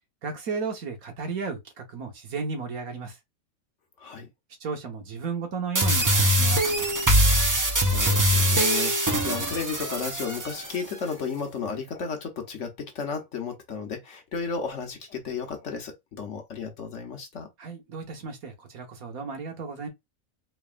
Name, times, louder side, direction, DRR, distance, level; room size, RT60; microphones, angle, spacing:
voice 1, 0.2-3.2 4.6-6.9 17.6-19.9, right 5 dB, 75° right, 1.6 m, -34 dB
sound 1, 5.7-10.8, equal, 30° right, 0.3 m, -22 dB
voice 2, 7.6-17.5, left 5 dB, 60° left, 1.2 m, -34 dB
4.1 x 3.4 x 2.4 m
omnidirectional pair, 1.5 m